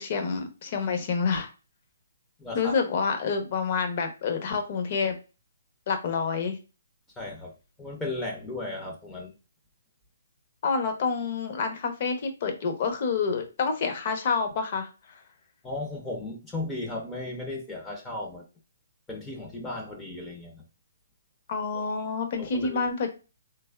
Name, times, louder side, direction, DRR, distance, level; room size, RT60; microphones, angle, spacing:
voice 1, 0.0-1.5 2.5-5.2 5.9-6.6 10.6-14.9 21.5-23.1, left 5 dB, 40° left, 6 dB, 0.7 m, -28 dB
voice 2, 2.4-2.7 7.2-9.3 15.6-18.4 19.1-20.6 21.7-21.8 22.4-22.8, left 2 dB, 10° left, -1 dB, 0.6 m, -35 dB
3.3 x 3.0 x 2.2 m, 0.31 s
hypercardioid pair, 160°, 0 cm